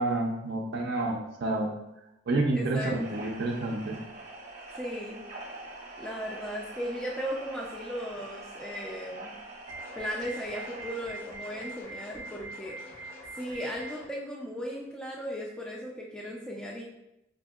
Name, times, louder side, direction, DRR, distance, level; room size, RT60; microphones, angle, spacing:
voice 1, 0.0-1.7 2.3-4.0, right 2 dB, 55° right, 0 dB, 0.4 m, -29 dB
voice 2, 2.5-3.3 4.7-5.2 6.0-9.3 10.0-13.1 13.3-16.8, equal, 5° left, -4 dB, 0.3 m, -37 dB
sound 1, 2.9-11.8, right 2 dB, 35° right, 0.8 m, -45 dB
sound 2, 9.7-14.1, right 2 dB, 80° left, 1.3 m, -43 dB
5.1 x 2.7 x 2.3 m, 0.87 s
head